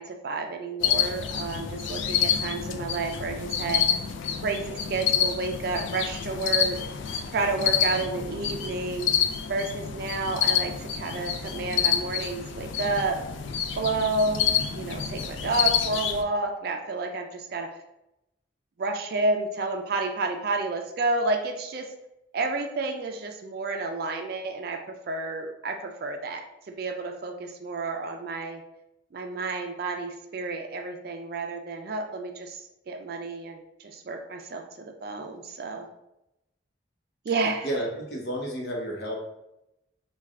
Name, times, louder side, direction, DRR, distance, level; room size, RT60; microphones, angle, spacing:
voice 1, 0.0-3.8 4.4-6.8 7.3-9.1 9.5-13.2 13.8-14.4 14.7-17.7 18.8-21.9 22.3-24.8 25.1-26.4 26.7-28.6 29.1-35.9 37.3-37.7, right 3 dB, 55° right, 4 dB, 0.3 m, -30 dB
sound 1, 0.8-16.2, left 8 dB, 90° left, 0.4 m, -28 dB
voice 2, 37.6-39.2, equal, 60° left, -2 dB, 0.9 m, -31 dB
3.2 x 2.3 x 3.5 m, 0.87 s
head